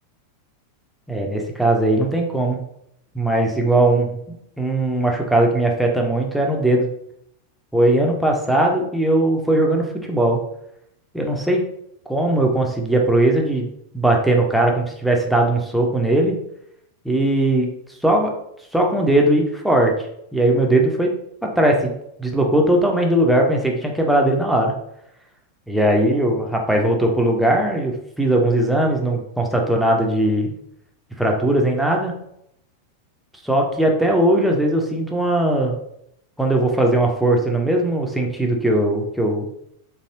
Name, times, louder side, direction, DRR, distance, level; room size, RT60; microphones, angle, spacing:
voice 1, 1.1-2.6 3.1-4.2 4.6-6.9 7.7-10.4 11.1-11.6 12.1-13.7 13.9-16.3 17.0-17.7 18.0-18.3 18.7-19.9 20.3-21.1 21.4-21.9 22.2-24.7 25.7-30.5 31.2-32.1 33.4-35.7 36.4-39.5, right 1 dB, ahead, 0 dB, 0.6 m, -19 dB
3.1 x 2.6 x 2.8 m, 0.75 s
figure-of-eight pair, 90°, 0 cm